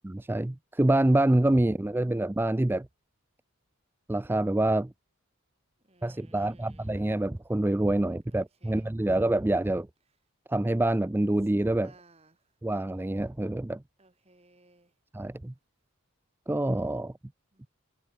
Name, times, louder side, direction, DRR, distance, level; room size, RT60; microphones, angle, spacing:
voice 1, 0.0-2.9 4.1-4.9 6.0-9.9 10.5-11.9 12.6-13.8 15.1-15.5 16.5-17.1, right 1 dB, 10° right, 0.3 m, -26 dB
voice 2, 5.9-6.9 8.3-8.8 11.8-12.4 14.0-14.9 17.5-17.6, right 2 dB, 30° right, 2.7 m, -60 dB
head